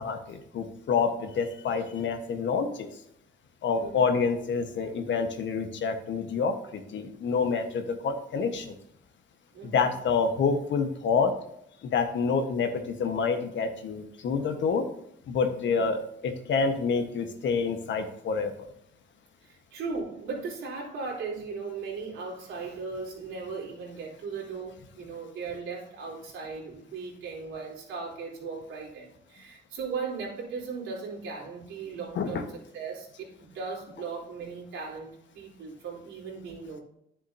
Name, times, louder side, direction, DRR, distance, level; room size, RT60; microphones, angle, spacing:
voice 1, 0.0-2.9 3.6-8.7 9.6-11.3 11.8-14.8 15.3-18.5 32.1-32.4, left 5 dB, 70° left, 6 dB, 1.4 m, -27 dB
voice 2, 3.7-4.1 9.5-9.9 15.6-15.9 19.4-36.8, right 4 dB, 85° right, -3 dB, 3.8 m, -37 dB
10.5 x 7.4 x 2.8 m, 0.75 s
cardioid pair, 90°, 20 cm